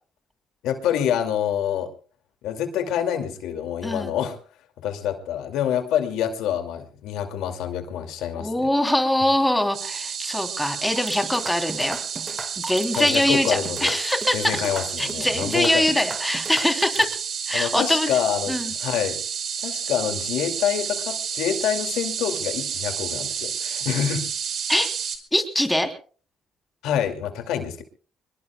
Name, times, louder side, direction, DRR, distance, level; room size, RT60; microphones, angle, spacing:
voice 1, 0.6-1.9 2.4-4.4 4.8-8.7 12.9-13.9 14.3-15.9 17.5-19.2 19.6-24.3 26.8-27.8, left 9 dB, 85° left, 6 dB, 2.4 m, -26 dB
voice 2, 8.4-12.0 12.7-14.7 15.0-17.2 17.5-18.1 18.5-18.7 24.7-24.9 25.3-25.9, left 1 dB, 5° left, 5 dB, 3.3 m, -23 dB
sound 1, 9.7-25.2, right 7 dB, 65° right, 2.8 m, -31 dB
sound 2, 10.9-17.1, right 2 dB, 20° right, 1.7 m, -36 dB
25.0 x 21.5 x 2.3 m, 0.39 s
supercardioid pair, 75°, 0 cm